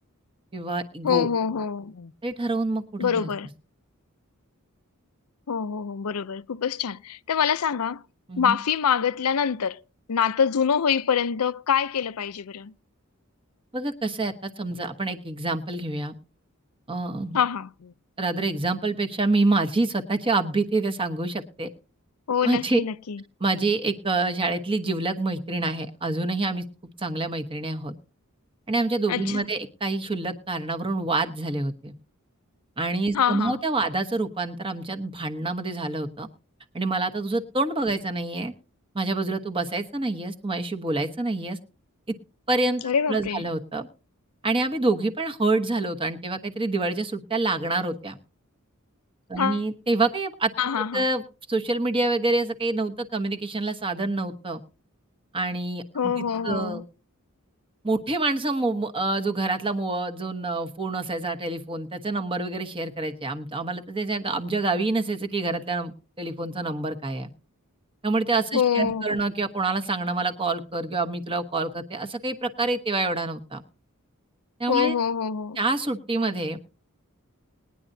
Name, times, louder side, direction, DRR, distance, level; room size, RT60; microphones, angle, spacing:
voice 1, 0.5-1.3 2.2-3.3 8.3-8.6 13.7-16.1 16.9-17.4 18.2-21.7 22.4-22.8 23.4-26.6 27.0-27.9 28.7-31.9 32.8-36.3 36.7-38.5 38.9-41.6 42.5-42.8 43.1-43.9 44.4-48.2 49.3-51.2 51.5-54.6 55.3-56.8 57.8-67.3 68.0-73.6 74.6-74.9 75.6-76.6, right 2 dB, 25° right, 1.2 m, -27 dB
voice 2, 1.0-2.1 3.0-3.5 5.5-8.0 8.4-9.8 10.1-12.7 17.3-17.9 22.3-23.2 29.1-29.4 33.1-33.6 42.8-43.4 49.4-49.6 50.6-51.0 55.9-56.8 68.5-69.1 74.7-75.6, left 7 dB, 90° left, 0.5 m, -25 dB
20.5 x 10.0 x 2.7 m
head